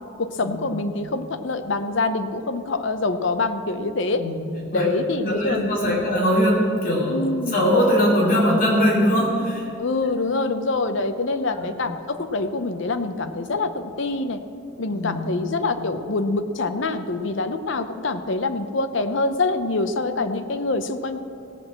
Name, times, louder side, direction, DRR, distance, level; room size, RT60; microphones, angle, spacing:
voice 1, 0.2-4.2 4.7-6.1 7.1-7.6 9.8-14.4 14.8-21.2, left 3 dB, 60° left, 9 dB, 0.7 m, -25 dB
voice 2, 4.1-4.5 4.7-4.9 5.2-7.2 7.5-9.7 11.6-11.7 14.9-15.3, equal, 40° left, -4 dB, 2.7 m, -21 dB
16.5 x 6.2 x 7.5 m, 2.5 s
head